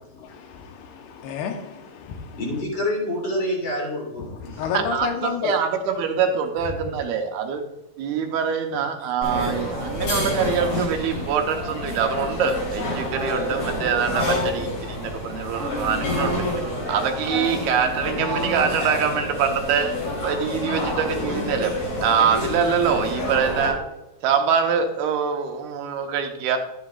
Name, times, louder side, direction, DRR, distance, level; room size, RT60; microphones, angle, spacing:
voice 1, 0.1-2.4 4.2-5.6 6.9-7.0, left 6 dB, 85° left, 3.1 m, -31 dB
voice 2, 2.4-4.6, left 1 dB, 30° left, 3.3 m, -27 dB
voice 3, 4.7-7.6 8.0-20.0 20.2-23.8 24.2-26.6, right 7 dB, 80° right, 2.8 m, -24 dB
sound 1, 9.2-23.7, left 2 dB, 55° left, 4.9 m, -28 dB
12.5 x 9.3 x 2.4 m
omnidirectional pair, 4.5 m